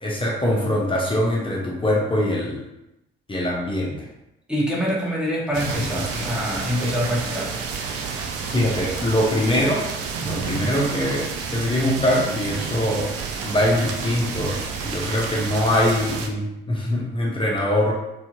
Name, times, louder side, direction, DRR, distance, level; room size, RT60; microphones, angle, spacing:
voice 1, 0.0-2.6 3.3-4.1 5.9-6.3 8.4-9.8 10.2-13.1 13.4-17.9, left 1 dB, 15° left, -3 dB, 0.9 m, -23 dB
voice 2, 4.5-7.6, equal, 5° right, -5 dB, 1.3 m, -25 dB
sound 1, 5.5-16.3, right 5 dB, 50° right, 0.5 m, -30 dB
4.2 x 2.5 x 2.7 m, 0.88 s
figure-of-eight pair, 40°, 29 cm